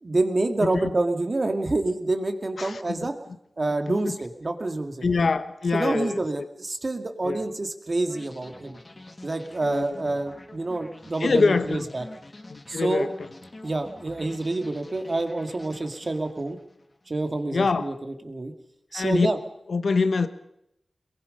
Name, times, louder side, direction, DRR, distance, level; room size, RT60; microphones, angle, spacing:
voice 1, 0.0-3.1 3.6-5.1 5.7-8.8 9.2-12.0 12.7-13.1 13.6-16.6 17.1-18.5 18.9-19.4, right 2 dB, 45° right, 2.2 m, -27 dB
voice 2, 2.6-3.0 3.9-4.2 5.0-6.5 7.2-7.4 9.6-10.0 11.2-11.9 12.5-13.1 17.5-18.0 18.9-19.3 19.7-20.3, left 4 dB, 85° left, 1.2 m, -25 dB
sound 1, 8.1-17.1, left 2 dB, 35° left, 1.7 m, -47 dB
23.0 x 21.5 x 5.5 m
wide cardioid pair, 70°, 0 cm